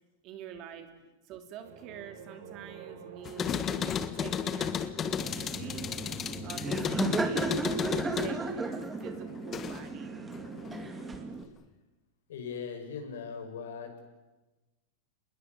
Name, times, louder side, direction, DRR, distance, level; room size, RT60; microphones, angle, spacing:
voice 1, 0.2-0.9 1.3-5.9 6.4-10.1, right 8 dB, 40° right, 7 dB, 3.0 m, -46 dB
sound 1, 1.6-11.3, right 6 dB, 60° right, 7.2 m, -49 dB
sound 2, 3.2-10.0 10.3-11.2, left 8 dB, 25° left, 1.4 m, -34 dB
Laughter, 5.2-11.4, right 3 dB, 10° right, 2.3 m, -35 dB
voice 2, 12.3-14.0, left 6 dB, 80° left, 5 dB, 6.5 m, -39 dB
27.0 x 21.0 x 9.6 m, 1.1 s
supercardioid pair, 145°, 0 cm